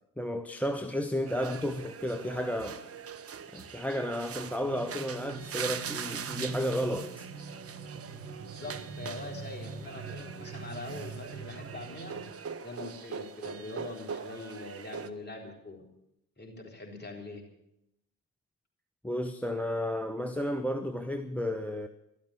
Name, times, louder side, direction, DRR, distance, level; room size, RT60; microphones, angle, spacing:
voice 1, 0.2-2.8 3.5-7.3 19.0-21.9, equal, 5° left, 0.8 m, -32 dB
sound 1, 1.2-12.3, right 5 dB, 75° right, 1.6 m, -45 dB
sound 2, 1.3-15.1, right 7 dB, 30° right, 1.0 m, -42 dB
voice 2, 8.4-12.2 12.6-15.9 16.4-17.4, left 2 dB, 20° left, 4.1 m, -43 dB
13.5 x 12.5 x 8.5 m
figure-of-eight pair, 50°, 46 cm